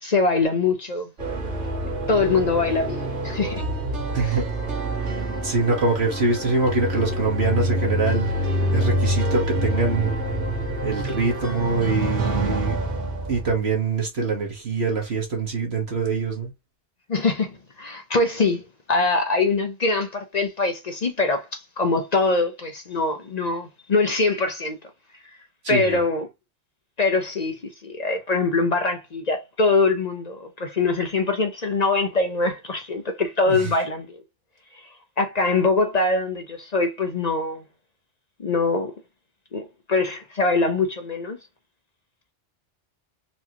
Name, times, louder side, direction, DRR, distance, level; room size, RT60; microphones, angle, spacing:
voice 1, 0.0-1.1 2.1-3.6 17.1-24.8 25.7-26.3 27.0-34.2 35.2-37.6 38.4-38.9 39.5-41.4, left 3 dB, 45° left, 0.7 m, -23 dB
sound 1, 1.2-13.6, right 1 dB, 80° right, 1.7 m, -26 dB
voice 2, 4.1-4.5 5.0-10.1 10.8-12.8 13.3-16.5 25.6-26.0 33.5-33.7, right 3 dB, 65° right, 1.5 m, -24 dB
4.4 x 2.9 x 2.8 m
omnidirectional pair, 1.2 m